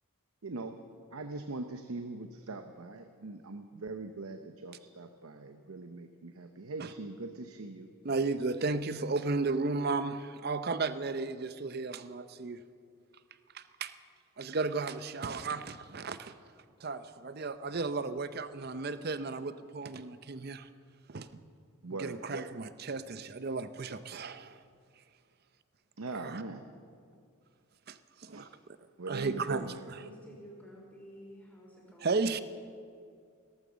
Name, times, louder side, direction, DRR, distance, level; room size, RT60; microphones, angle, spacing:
voice 1, 0.4-0.7 1.1-7.9 21.8-22.2 26.0-26.6 28.3-28.4 29.0-29.9, right 3 dB, 85° right, 7 dB, 0.8 m, -41 dB
voice 2, 8.0-12.6 13.5-13.9 14.4-16.3 16.8-20.7 21.1-21.3 22.0-24.6 26.1-26.4 27.9-28.5 29.1-30.0 32.0-32.4, right 3 dB, 45° right, 12 dB, 0.6 m, -34 dB
voice 3, 30.0-32.4, equal, 5° left, -3 dB, 3.7 m, -51 dB
16.5 x 14.0 x 6.3 m, 2.3 s
head